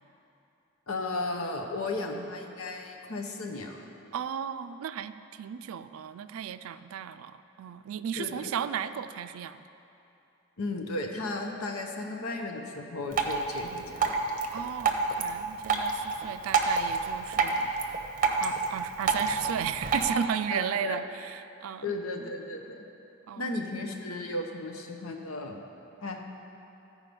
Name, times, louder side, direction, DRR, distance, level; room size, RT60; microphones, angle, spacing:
voice 1, 0.9-3.8 8.1-8.5 10.6-14.1 20.5-21.0 21.8-22.8 23.4-25.6 26.0-26.2, left 2 dB, 85° left, 3 dB, 0.9 m, -35 dB
voice 2, 4.1-9.6 14.5-17.7 18.4-21.9 23.3-23.5, right 8 dB, 80° right, 12 dB, 0.3 m, -35 dB
Drip, 13.1-20.1, right 4 dB, 40° right, 0.7 m, -29 dB
14.0 x 4.9 x 5.3 m, 2.9 s
head